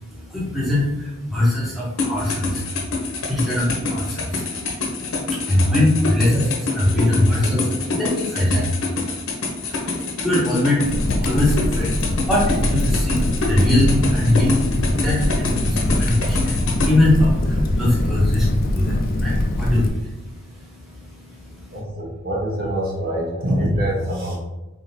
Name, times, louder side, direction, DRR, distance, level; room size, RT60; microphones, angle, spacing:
voice 1, 0.0-21.8, left 1 dB, ahead, -8 dB, 0.8 m, -22 dB
sound 1, 2.0-16.9, left 3 dB, 75° left, 0.8 m, -26 dB
Crackle, 10.8-19.9, left 1 dB, 45° left, 0.4 m, -22 dB
voice 2, 21.7-24.4, equal, 40° right, -4 dB, 1.1 m, -24 dB
4.0 x 3.7 x 2.7 m, 1.0 s
head